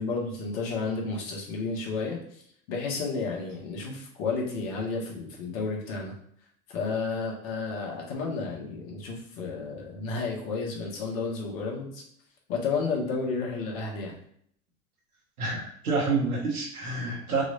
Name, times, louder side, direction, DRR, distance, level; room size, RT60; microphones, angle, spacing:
voice 1, 0.0-2.4 2.7-6.2 6.7-12.0 12.5-14.2, left 4 dB, 65° left, -1 dB, 1.9 m, -32 dB
voice 2, 15.4-17.4, right 3 dB, 90° right, -2 dB, 1.7 m, -28 dB
5.9 x 3.3 x 2.7 m, 0.64 s
hypercardioid pair, 85°, 43 cm